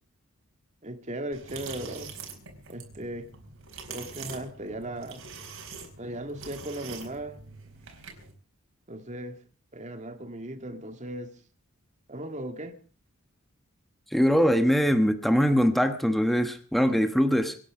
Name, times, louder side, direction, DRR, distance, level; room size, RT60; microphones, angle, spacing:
voice 1, 0.8-2.1 2.7-3.3 3.9-5.2 6.0-7.4 8.9-9.4 9.7-11.3 12.1-12.7, right 1 dB, 35° right, 7 dB, 1.9 m, -37 dB
sound 1, 1.3-8.3, right 5 dB, 70° right, 4.4 m, -44 dB
voice 2, 14.1-17.6, equal, ahead, 8 dB, 1.2 m, -22 dB
25.5 x 10.0 x 4.9 m, 0.41 s
head